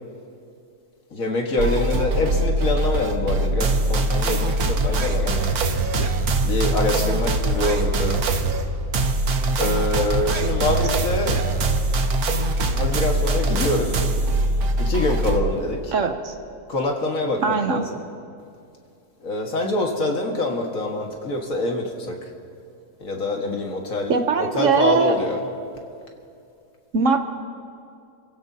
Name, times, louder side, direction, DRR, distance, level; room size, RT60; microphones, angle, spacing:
voice 1, 1.1-5.5 6.4-8.2 9.6-11.4 12.7-14.0 14.8-15.9 16.7-18.0 19.2-22.3 23.0-25.5, left 2 dB, 60° left, 1 dB, 2.1 m, -25 dB
sound 1, 1.6-15.4, right 2 dB, 75° right, 1.5 m, -22 dB
voice 2, 15.9-16.3 17.4-17.8 24.1-25.1 26.9-27.2, right 5 dB, 60° right, 7 dB, 1.1 m, -20 dB
28.5 x 16.0 x 2.8 m, 2.5 s
omnidirectional pair, 1.6 m